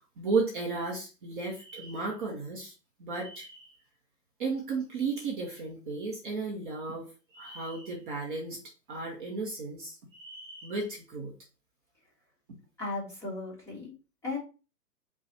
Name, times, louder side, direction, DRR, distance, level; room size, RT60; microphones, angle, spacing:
voice 1, 0.2-2.7 3.0-3.7 4.4-8.6 8.9-11.3, right 4 dB, 30° right, 0 dB, 0.9 m, -34 dB
voice 2, 12.8-13.9 14.2-14.4, left 3 dB, 5° left, -7 dB, 1.3 m, -36 dB
5.2 x 2.4 x 4.1 m, 0.33 s
hypercardioid pair, 150°, 49 cm